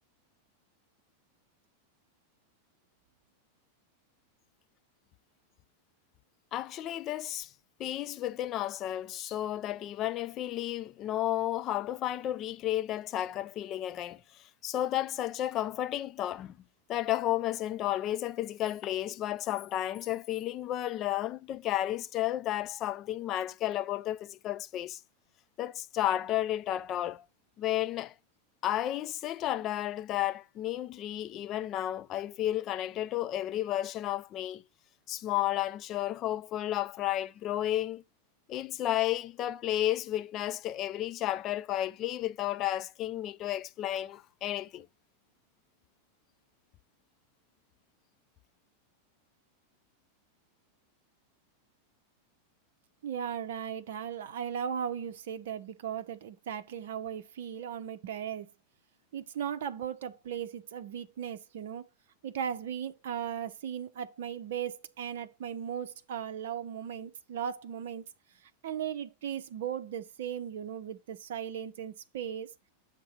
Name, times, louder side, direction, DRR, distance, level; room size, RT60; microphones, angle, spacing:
voice 1, 6.5-7.5 7.8-14.2 14.6-16.5 16.9-25.0 25.6-27.2 27.6-28.1 28.6-34.6 35.1-38.0 38.5-44.9, left 13 dB, 35° left, 0.3 m, -32 dB
voice 2, 53.0-58.5 59.1-61.8 62.2-68.0 68.6-72.5, right 8 dB, 55° right, 0.6 m, -37 dB
7.3 x 2.8 x 5.4 m
figure-of-eight pair, 90°, 0 cm